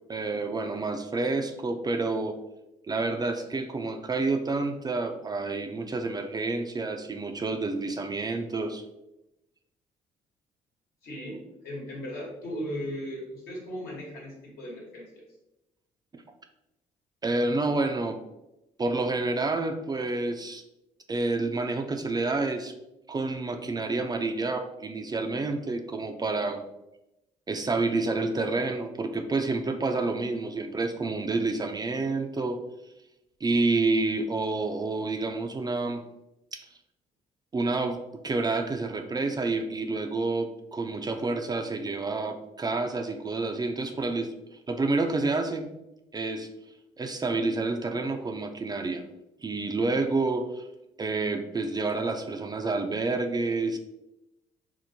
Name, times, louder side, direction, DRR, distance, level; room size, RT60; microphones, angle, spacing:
voice 1, 0.1-2.4 2.9-8.8 16.1-16.2 17.2-18.2 18.8-20.6 21.1-22.7 23.1-26.7 27.5-32.6 33.4-36.0 36.5-36.7 37.5-44.3 44.7-45.7 46.1-46.5 47.0-49.0 49.4-50.7 51.0-53.8, right 3 dB, 25° right, 6 dB, 0.4 m, -29 dB
voice 2, 11.0-15.2, equal, 75° left, -3 dB, 1.2 m, -37 dB
4.4 x 2.0 x 2.7 m, 0.92 s
hypercardioid pair, 50°, 16 cm